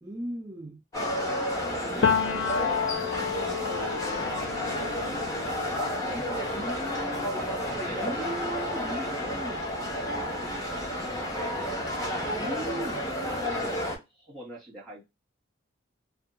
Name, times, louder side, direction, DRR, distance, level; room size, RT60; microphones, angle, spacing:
voice 1, 0.0-0.8 6.1-6.3 6.5-7.3 8.0-9.6 12.3-13.1, right 1 dB, 15° right, 0.3 m, -37 dB
sound 1, 0.9-14.0, left 1 dB, 20° left, 0.7 m, -31 dB
voice 2, 1.5-5.0 5.3-6.9 7.3-7.5 7.7-8.4 8.8-9.4 10.5-12.0 13.2-13.8 14.1-15.1, right 1 dB, ahead, 1.3 m, -44 dB
Piano, 2.0-9.6 10.0-11.5, left 7 dB, 70° left, 0.3 m, -33 dB
2.6 x 2.2 x 2.5 m
head